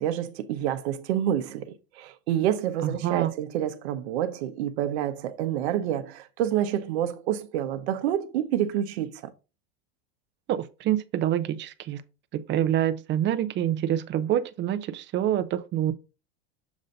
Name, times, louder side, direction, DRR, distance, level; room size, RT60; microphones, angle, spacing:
voice 1, 0.0-9.3, right 11 dB, 85° right, 0.9 m, -28 dB
voice 2, 2.8-3.3 10.5-12.0 12.3-15.9, right 11 dB, 35° right, 0.5 m, -26 dB
7.2 x 2.6 x 5.1 m
supercardioid pair, 120°, 32 cm